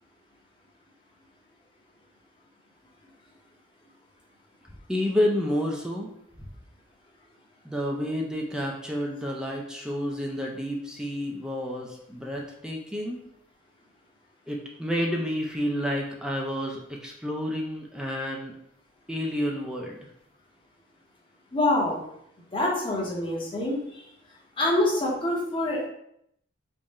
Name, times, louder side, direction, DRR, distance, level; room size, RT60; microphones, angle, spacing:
voice 1, 4.9-6.1 6.4-6.5 7.6-13.2 14.5-18.6 19.1-20.0, equal, 5° right, -1 dB, 0.4 m, -30 dB
voice 2, 21.5-22.0 22.5-23.8 24.6-25.9, left 1 dB, 25° left, -3 dB, 0.8 m, -25 dB
3.6 x 2.1 x 4.0 m, 0.74 s
head